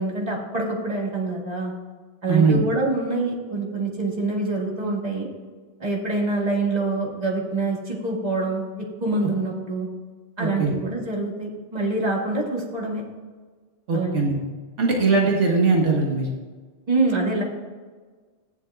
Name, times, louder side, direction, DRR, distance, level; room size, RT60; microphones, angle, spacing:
voice 1, 0.0-1.7 2.2-5.3 5.8-9.9 10.4-13.0 13.9-14.2 16.9-17.4, right 2 dB, 35° right, -3 dB, 2.1 m, -25 dB
voice 2, 2.3-2.6 10.4-10.7 13.9-14.4 14.8-16.3, right 4 dB, 90° right, -1 dB, 1.7 m, -20 dB
14.5 x 10.0 x 2.4 m, 1.4 s
omnidirectional pair, 1.2 m